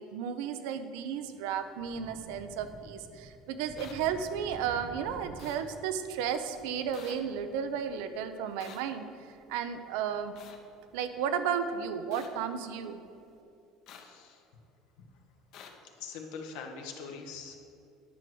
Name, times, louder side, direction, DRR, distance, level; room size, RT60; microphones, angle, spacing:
voice 1, 0.0-10.3 10.9-13.0, right 7 dB, 85° right, 10 dB, 0.6 m, -34 dB
Thunder / Rain, 1.0-13.4, right 2 dB, 25° right, 0.8 m, -53 dB
sound 1, 3.8-3.9 5.4-5.6 6.9-7.2 8.6-8.8 10.4-10.6 12.1-12.3 13.9-14.0 15.5-15.7, left 8 dB, 55° left, 1.0 m, -49 dB
voice 2, 13.9-14.4 16.0-17.6, left 5 dB, 80° left, 3 dB, 1.3 m, -43 dB
10.5 x 4.6 x 7.7 m, 2.6 s
cardioid pair, 145°, 0 cm